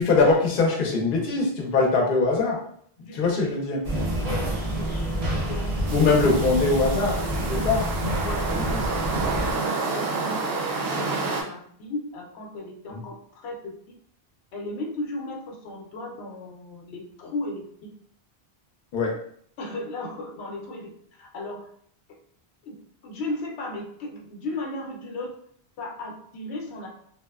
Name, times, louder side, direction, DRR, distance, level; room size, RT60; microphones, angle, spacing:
voice 1, 0.0-2.6 3.1-3.8 5.9-7.8 8.6-8.8 12.9-13.0 18.9-19.2, left 3 dB, 60° left, 0 dB, 0.7 m, -22 dB
voice 2, 3.0-3.4 4.2-5.1 5.3-6.1 7.5-7.8 8.2-8.5 9.3-14.0 14.5-17.9 19.6-21.7 22.6-22.8 23.0-25.4 25.8-26.9, left 2 dB, 90° left, 0 dB, 0.9 m, -36 dB
sound 1, 3.8-9.5, equal, 40° right, 0.6 m, -28 dB
sound 2, 5.9-11.4, right 4 dB, 70° right, 0.8 m, -29 dB
2.8 x 2.1 x 2.2 m, 0.63 s
omnidirectional pair, 1.1 m